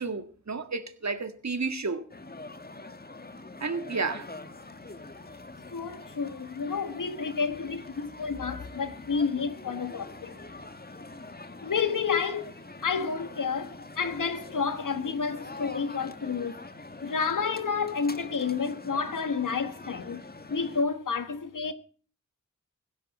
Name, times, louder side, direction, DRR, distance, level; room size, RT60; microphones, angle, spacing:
voice 1, 0.0-2.0 3.6-4.3, right 4 dB, 60° right, 1.9 m, -31 dB
sound 1, 2.1-20.8, left 2 dB, 30° left, 1.5 m, -44 dB
voice 2, 5.7-10.4 11.6-16.6 17.0-20.2 20.5-21.7, left 5 dB, 85° left, 1.4 m, -30 dB
16.0 x 13.5 x 4.2 m
cardioid pair, 45°, 31 cm